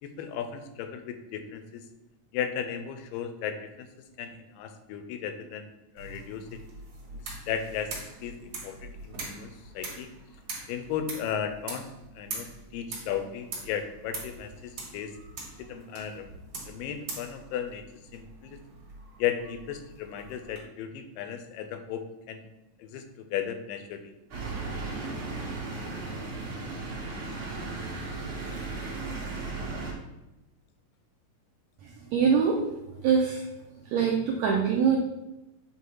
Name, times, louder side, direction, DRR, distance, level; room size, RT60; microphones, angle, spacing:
voice 1, 0.0-1.8 2.3-3.9 4.2-5.7 6.0-6.6 7.1-10.1 10.7-11.9 12.2-15.1 15.6-16.3 16.6-17.8 18.1-18.6 19.2-22.5 22.8-24.1, left 8 dB, 85° left, 7 dB, 2.3 m, -35 dB
sound 1, 6.0-20.6, right 3 dB, 60° right, 2.7 m, -43 dB
sound 2, 24.3-29.9, right 3 dB, 45° right, 2.3 m, -35 dB
voice 2, 32.1-32.6 33.0-33.4 33.9-35.0, right 6 dB, 80° right, 0 dB, 1.6 m, -23 dB
8.0 x 2.8 x 4.6 m, 0.97 s
omnidirectional pair, 3.9 m